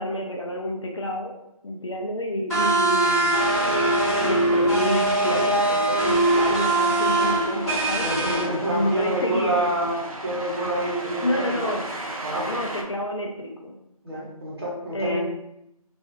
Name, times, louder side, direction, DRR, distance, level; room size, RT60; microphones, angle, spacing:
voice 1, 0.0-1.3 1.6-3.4 4.2-9.6 11.2-11.8 12.5-13.7 14.1-14.3 14.9-15.2, left 1 dB, 50° left, 0 dB, 0.4 m, -29 dB
sound 1, 2.5-8.4, right 2 dB, ahead, 1.0 m, -22 dB
sound 2, 5.3-12.8, right 1 dB, 65° right, 0.6 m, -35 dB
voice 2, 8.0-10.0 10.2-11.8 12.2-12.5 14.0-15.2, right 1 dB, 40° right, -6 dB, 0.9 m, -27 dB
2.5 x 2.4 x 2.5 m, 0.84 s
figure-of-eight pair, 165°, 19 cm